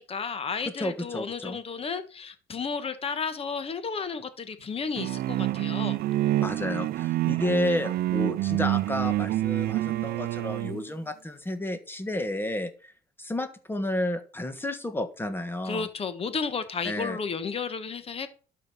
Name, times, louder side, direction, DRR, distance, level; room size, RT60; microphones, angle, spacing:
voice 1, 0.0-6.0 15.6-18.3, left 5 dB, 35° left, 11 dB, 1.4 m, -33 dB
voice 2, 0.8-1.6 6.4-12.9 13.2-15.9 16.8-17.2, left 1 dB, 10° left, 10 dB, 1.4 m, -31 dB
sound 1, 5.0-10.8, right 15 dB, 65° right, 0.5 m, -27 dB
12.0 x 5.2 x 5.5 m, 0.38 s
cardioid pair, 110°, 17 cm